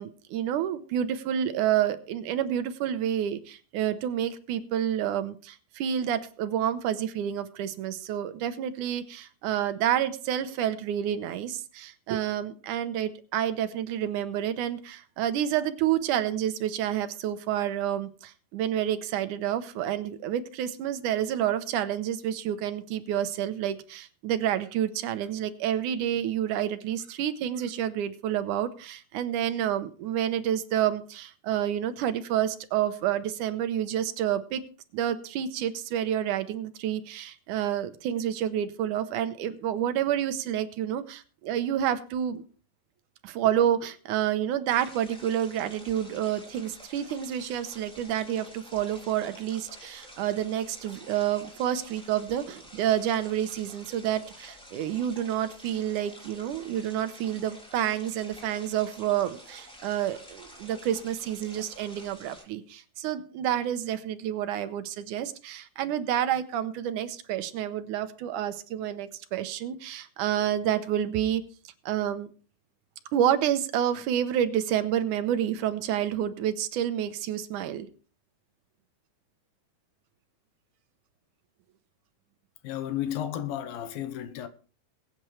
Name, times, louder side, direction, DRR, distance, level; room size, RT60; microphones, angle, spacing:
voice 1, 0.0-34.6 34.9-42.4 43.2-71.4 71.9-72.3 73.1-77.9, right 10 dB, 70° right, 2.2 m, -29 dB
sound 1, 44.7-62.4, equal, ahead, 2.6 m, -49 dB
voice 2, 82.6-84.5, left 11 dB, 85° left, 2.8 m, -33 dB
21.5 x 8.8 x 3.2 m
omnidirectional pair, 4.1 m